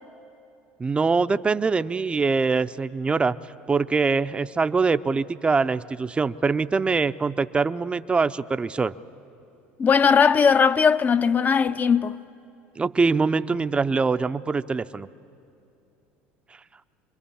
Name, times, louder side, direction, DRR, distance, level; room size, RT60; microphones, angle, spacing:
voice 1, 0.8-3.4 3.7-8.9 12.8-15.1, right 4 dB, 20° right, 0.6 m, -23 dB
voice 2, 9.8-12.2, left 6 dB, 30° left, 0.6 m, -19 dB
25.5 x 22.0 x 7.2 m
supercardioid pair, 90°, 5 cm